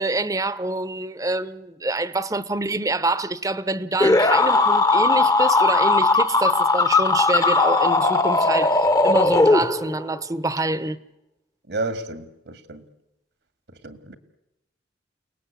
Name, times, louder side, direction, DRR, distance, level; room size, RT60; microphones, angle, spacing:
voice 1, 0.0-11.0, right 2 dB, 20° right, 0.8 m, -26 dB
sound 1, 4.0-10.0, left 3 dB, 20° left, 0.8 m, -18 dB
voice 2, 11.7-12.9 13.8-14.1, right 2 dB, 75° right, 2.2 m, -31 dB
30.0 x 19.0 x 8.4 m
head